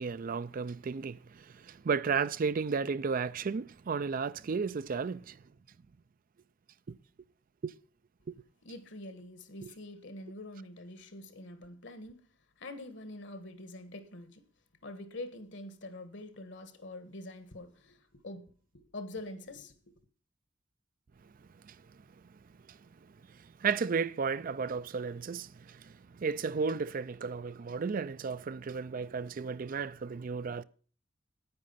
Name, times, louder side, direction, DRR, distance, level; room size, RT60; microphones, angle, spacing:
voice 1, 0.0-5.4 6.9-7.0 7.6-7.7 8.3-8.4 9.6-9.7 21.6-21.8 22.7-22.8 23.3-30.6, right 5 dB, 45° right, 0.4 m, -34 dB
voice 2, 8.6-12.3 12.6-14.4 14.8-19.8, left 1 dB, 65° left, 1.6 m, -45 dB
9.8 x 9.4 x 5.7 m
head